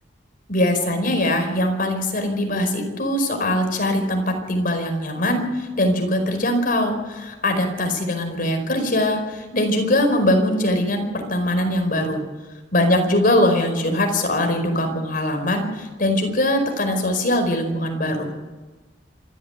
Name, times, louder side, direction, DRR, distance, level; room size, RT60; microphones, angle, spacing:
voice 1, 0.5-12.2 12.7-18.3, left 1 dB, 50° left, 5 dB, 4.9 m, -21 dB
26.5 x 13.5 x 8.2 m, 1.2 s
head